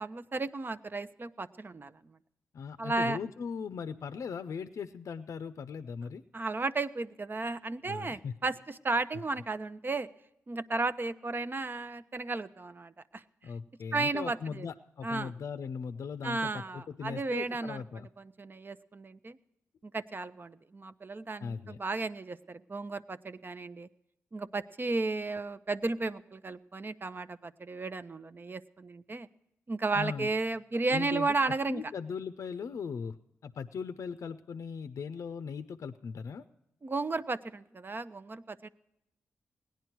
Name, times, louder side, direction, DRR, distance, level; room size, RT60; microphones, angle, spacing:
voice 1, 0.0-2.2 2.8-3.2 6.3-10.1 10.5-13.2 13.9-14.7 15.0-15.3 16.2-17.8 18.2-19.4 19.8-23.9 24.3-29.3 29.7-31.8 36.8-38.7, right 3 dB, 40° right, 12 dB, 0.7 m, -34 dB
voice 2, 2.5-6.2 7.9-8.3 13.4-18.1 21.4-21.8 29.9-30.3 30.9-33.2 33.4-36.4, left 6 dB, 75° left, 11 dB, 0.5 m, -39 dB
17.5 x 10.5 x 4.6 m, 0.86 s
cardioid pair, 50°, 5 cm